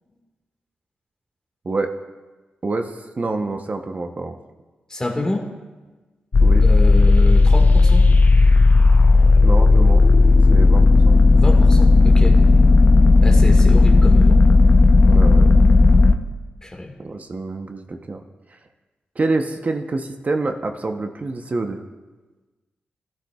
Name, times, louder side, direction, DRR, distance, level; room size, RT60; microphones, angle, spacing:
voice 1, 2.6-4.3 6.4-6.6 9.4-10.0 10.5-11.2 15.1-15.6 17.0-18.2 18.5-18.6 19.2-21.8, right 3 dB, 45° right, 5 dB, 0.8 m, -26 dB
voice 2, 4.9-5.5 6.6-8.1 11.3-12.4 13.2-14.4 16.6-16.9, left 1 dB, 20° left, 2 dB, 1.7 m, -27 dB
sound 1, 6.3-16.1, left 3 dB, 50° left, 0.6 m, -12 dB
14.0 x 12.0 x 2.4 m, 1.2 s
cardioid pair, 50°, 4 cm